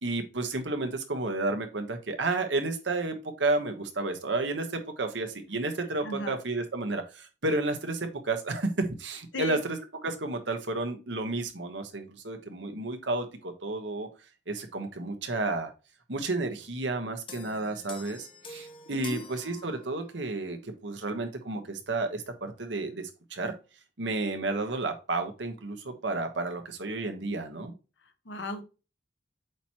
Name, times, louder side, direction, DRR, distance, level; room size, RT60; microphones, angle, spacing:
voice 1, 0.0-9.8 10.0-14.1 14.5-15.7 16.1-23.5 24.0-27.7, right 2 dB, 80° right, 6 dB, 1.3 m, -31 dB
voice 2, 6.0-6.4 9.3-9.6 18.9-19.2 28.2-28.6, left 1 dB, 85° left, 7 dB, 1.2 m, -35 dB
sound 1, 17.3-20.3, left 3 dB, 25° left, 0.9 m, -47 dB
8.1 x 3.1 x 4.3 m, 0.31 s
head